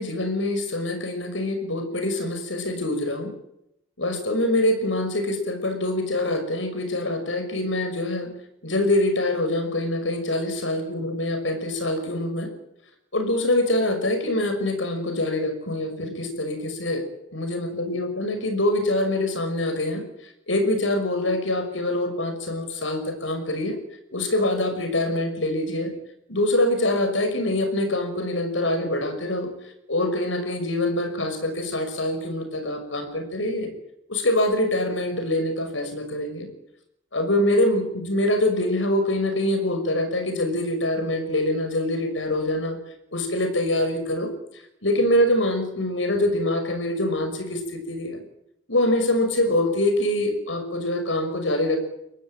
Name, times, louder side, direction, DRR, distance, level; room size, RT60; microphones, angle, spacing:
voice 1, 0.0-3.3 4.0-8.3 8.6-12.5 13.1-17.0 17.3-20.0 20.5-23.8 24.1-25.9 26.3-29.5 29.9-33.7 34.1-36.5 37.1-42.8 43.1-44.3 44.8-48.2 48.7-51.8, left 1 dB, 85° left, 7 dB, 5.9 m, -24 dB
23.5 x 19.0 x 8.9 m, 0.80 s
head